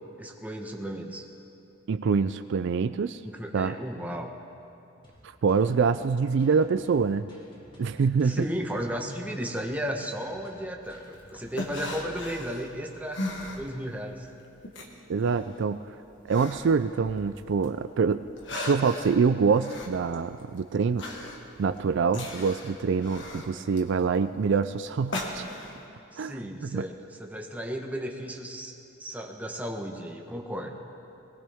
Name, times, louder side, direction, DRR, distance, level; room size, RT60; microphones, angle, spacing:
voice 1, 0.2-1.2 3.2-4.3 8.2-13.2 13.5-14.3 26.1-28.7 29.0-30.7, equal, 10° right, 1 dB, 1.2 m, -34 dB
voice 2, 1.9-3.2 3.5-3.7 5.4-7.3 7.8-8.5 15.1-15.8 16.2-18.2 18.6-21.0 21.6-25.4 26.2-26.4 26.6-26.8, right 5 dB, 65° right, 11 dB, 0.4 m, -25 dB
sound 1, 5.0-12.2, equal, 25° left, 2.0 m, -54 dB
sound 2, 10.9-14.2 14.4-17.7 18.1-25.8, left 1 dB, 70° left, 1.6 m, -38 dB
21.0 x 19.0 x 3.6 m, 2.7 s
head